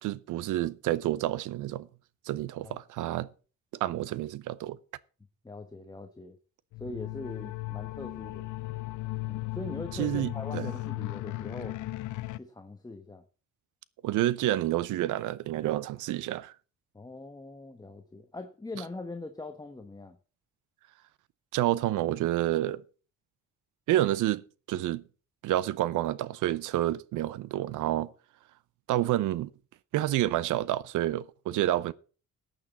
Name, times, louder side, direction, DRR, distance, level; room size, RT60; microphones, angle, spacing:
voice 1, 0.0-1.9 2.3-3.3 3.8-4.8 10.0-10.7 14.0-16.5 21.5-22.8 23.9-25.0 25.4-28.1 28.9-29.5 29.9-31.9, right 14 dB, 85° right, 0.7 m, -29 dB
voice 2, 5.4-6.4 6.8-8.5 9.3-11.8 12.3-13.2 16.9-20.2, left 2 dB, 15° left, 1.1 m, -42 dB
sound 1, 6.7-12.4, left 18 dB, 80° left, 0.6 m, -36 dB
14.5 x 9.2 x 4.1 m
cardioid pair, 90°, 30 cm